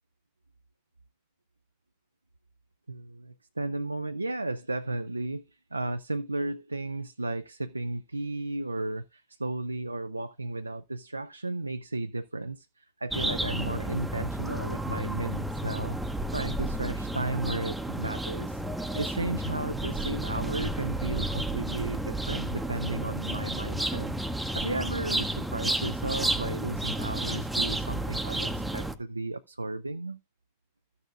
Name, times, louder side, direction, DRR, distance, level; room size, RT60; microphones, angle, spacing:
voice 1, 2.9-18.6 18.9-30.2, right 2 dB, 80° right, 0.4 m, -34 dB
sound 1, 13.1-29.0, right 1 dB, 5° right, 0.8 m, -32 dB
13.5 x 6.7 x 2.5 m
figure-of-eight pair, 90°, 0 cm